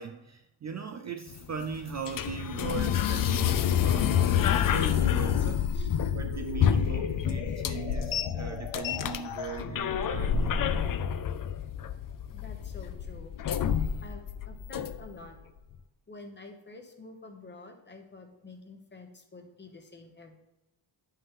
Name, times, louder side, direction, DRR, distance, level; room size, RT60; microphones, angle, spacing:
voice 1, 0.0-10.9, right 5 dB, 40° right, 7 dB, 0.4 m, -39 dB
sound 1, 1.3-15.3, left 8 dB, 45° left, 0.4 m, -29 dB
sound 2, 2.7-9.6, left 9 dB, 75° left, 0.8 m, -34 dB
voice 2, 12.3-13.6 14.0-15.4 16.1-20.3, left 3 dB, 25° left, 5 dB, 0.9 m, -48 dB
9.6 x 5.6 x 3.6 m, 0.96 s
wide cardioid pair, 150°, 47 cm